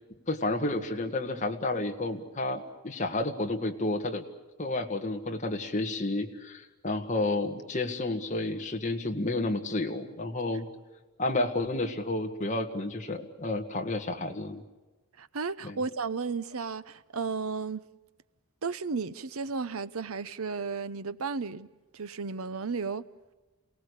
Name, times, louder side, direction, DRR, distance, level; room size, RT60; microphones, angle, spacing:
voice 1, 0.3-4.2 4.6-10.7 11.2-14.6 15.6-15.8, left 2 dB, 35° left, 1.8 m, -31 dB
voice 2, 15.2-17.8 18.6-21.7 21.9-23.1, right 4 dB, 75° right, 0.8 m, -34 dB
28.0 x 18.0 x 8.3 m
head